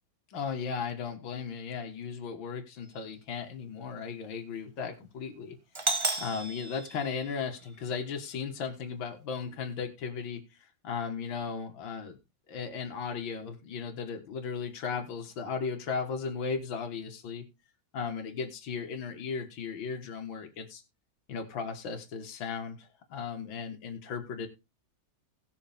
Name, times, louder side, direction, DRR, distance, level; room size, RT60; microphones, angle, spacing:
voice 1, 0.3-12.2 12.5-17.4 17.9-20.8 21.3-24.5, left 5 dB, 75° left, 4 dB, 2.3 m, -36 dB
Doorbell, 5.8-7.7, right 3 dB, 30° right, 0.5 m, -33 dB
18.5 x 6.3 x 3.5 m, 0.26 s
omnidirectional pair, 2.2 m